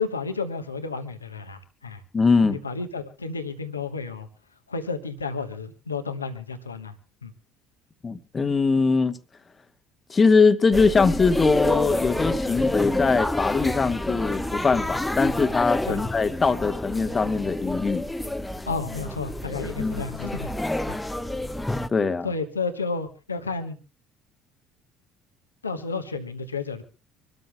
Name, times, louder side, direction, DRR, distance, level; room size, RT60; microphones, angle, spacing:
voice 1, 0.0-2.0 2.5-4.3 4.7-7.0 7.2-7.3 15.9-16.0 18.7-21.0 22.2-23.8 25.6-26.8, left 4 dB, 85° left, 1.1 m, -32 dB
voice 2, 2.1-2.6 8.0-9.1 10.1-18.1 19.8-20.0 21.9-22.3, left 4 dB, 25° left, 1.3 m, -22 dB
sound 1, 10.7-21.9, left 1 dB, 10° left, 0.9 m, -28 dB
25.0 x 13.0 x 2.3 m
figure-of-eight pair, 60°, 0 cm